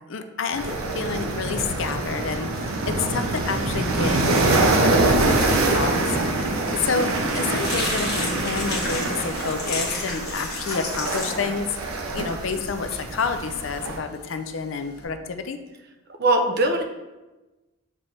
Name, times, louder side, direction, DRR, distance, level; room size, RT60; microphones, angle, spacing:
voice 1, 0.1-6.1 6.4-11.7 12.1-15.6, left 5 dB, 65° left, 8 dB, 0.5 m, -29 dB
sound 1, 0.5-14.0, right 2 dB, 85° right, 0.8 m, -25 dB
sound 2, 7.2-15.0, left 3 dB, 45° left, 1.4 m, -34 dB
voice 2, 16.2-16.8, right 2 dB, 50° right, 4 dB, 0.6 m, -21 dB
7.4 x 3.3 x 4.0 m, 1.1 s
head